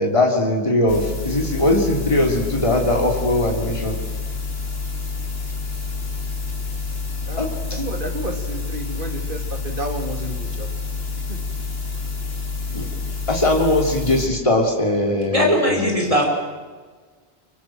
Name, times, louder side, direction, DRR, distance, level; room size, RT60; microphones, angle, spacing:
voice 1, 0.0-4.0 7.4-7.8 12.7-12.9 13.3-16.0, left 1 dB, 30° left, 1 dB, 3.1 m, -20 dB
sound 1, 0.9-14.3, left 4 dB, 70° left, 3.1 m, -28 dB
voice 2, 7.7-10.7 11.3-11.4, right 1 dB, 55° right, 3 dB, 3.2 m, -31 dB
voice 3, 15.3-16.2, equal, 35° right, 0 dB, 5.4 m, -19 dB
25.0 x 24.5 x 7.7 m, 1.4 s
omnidirectional pair, 1.0 m